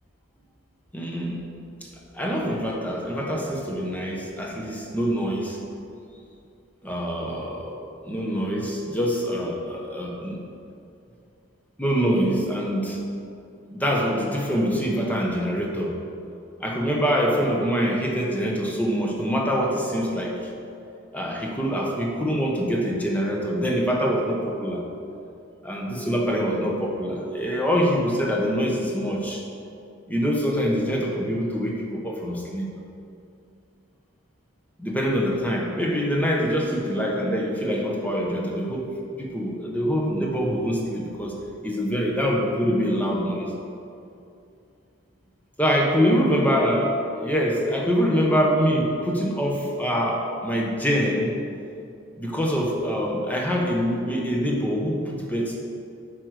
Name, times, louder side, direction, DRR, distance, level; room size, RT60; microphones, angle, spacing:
voice 1, 0.9-1.4 1.8-5.6 6.8-7.8 8.0-10.4 11.8-13.0 13.7-16.0 16.6-20.4 21.1-24.9 25.6-29.4 30.1-32.7 34.8-38.9 39.2-41.3 41.6-43.5 45.6-51.3 52.2-55.6, equal, 5° left, -2 dB, 0.9 m, -24 dB
8.5 x 4.7 x 6.4 m, 2.6 s
head